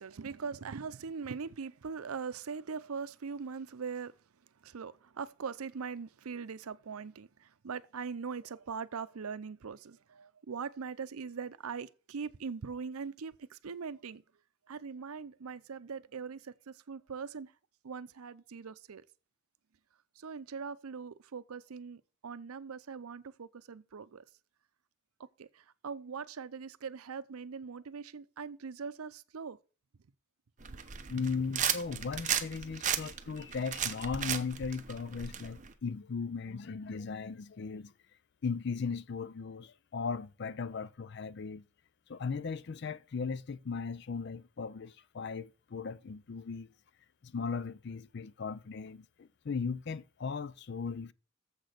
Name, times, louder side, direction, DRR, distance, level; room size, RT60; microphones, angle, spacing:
voice 1, 0.0-4.1 4.6-14.2 14.7-17.5 17.8-19.0 20.2-24.2 25.4-29.6, right 5 dB, 90° right, 0.6 m, -41 dB
sound 1, 30.6-35.7, right 9 dB, 35° right, 0.8 m, -35 dB
voice 2, 31.1-37.9 38.4-41.6 42.1-46.7 47.2-51.1, left 5 dB, 50° left, 0.4 m, -37 dB
7.3 x 6.0 x 6.6 m
head